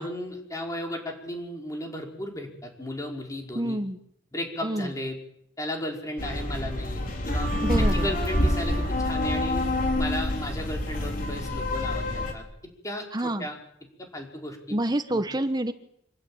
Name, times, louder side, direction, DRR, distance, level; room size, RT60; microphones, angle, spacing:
voice 1, 0.0-3.8 4.3-5.2 5.6-7.5 7.8-9.7 9.9-12.4 12.8-13.6 14.1-14.8 15.1-15.2, left 1 dB, 20° left, 1 dB, 5.3 m, -34 dB
voice 2, 3.5-4.0 4.6-4.9 7.6-8.1 13.1-13.5 14.7-15.7, right 1 dB, 25° right, 10 dB, 1.2 m, -27 dB
sound 1, 6.2-12.3, left 1 dB, 50° left, 4.7 m, -27 dB
26.5 x 16.0 x 8.9 m, 0.75 s
head